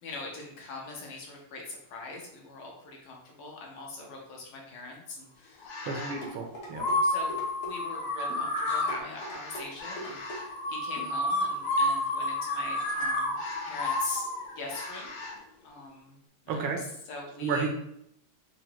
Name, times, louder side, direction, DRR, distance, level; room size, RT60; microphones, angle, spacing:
voice 1, 0.0-6.4 7.0-15.1 15.6-16.2 16.4-17.7, left 3 dB, 65° left, -1 dB, 1.5 m, -42 dB
sound 1, 5.6-6.2 6.7-15.3, left 1 dB, 90° left, 1.8 m, -31 dB
voice 2, 5.8-6.8 16.5-16.8 17.4-17.7, right 5 dB, 75° right, 3 dB, 1.4 m, -31 dB
sound 2, 6.2-7.0 7.3-7.7 8.3-8.5 8.9-9.7 10.0-10.4 11.0-11.1 11.5-11.6, right 1 dB, 50° left, 0.9 m, -41 dB
4.7 x 2.5 x 2.9 m, 0.74 s
omnidirectional pair, 2.4 m